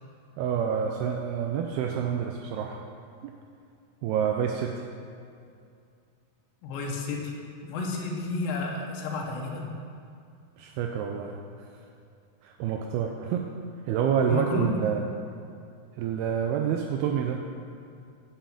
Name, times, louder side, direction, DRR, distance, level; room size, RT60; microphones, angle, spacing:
voice 1, 0.4-2.8 3.2-3.3 4.0-4.8 10.6-11.3 11.6-11.7 12.4-13.6 13.9-15.1 16.0-17.4, right 8 dB, 85° right, 2 dB, 2.3 m, -28 dB
voice 2, 6.6-7.3 7.6-9.7 14.3-14.8, left 3 dB, 85° left, 0 dB, 3.5 m, -31 dB
9.0 x 6.9 x 7.4 m, 2.4 s
omnidirectional pair, 5.0 m